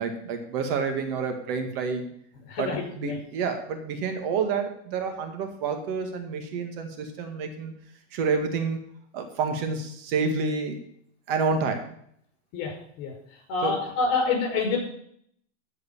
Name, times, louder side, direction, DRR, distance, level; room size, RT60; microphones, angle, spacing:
voice 1, 0.0-2.1 2.6-2.7 3.0-7.7 8.1-8.8 9.1-10.8 11.3-12.0 13.6-13.7, right 5 dB, 50° right, 6 dB, 2.0 m, -28 dB
voice 2, 2.5-3.2 12.5-13.1 13.5-14.8, left 4 dB, 45° left, 2 dB, 5.2 m, -27 dB
13.5 x 4.9 x 7.3 m, 0.68 s
hypercardioid pair, 130°, 36 cm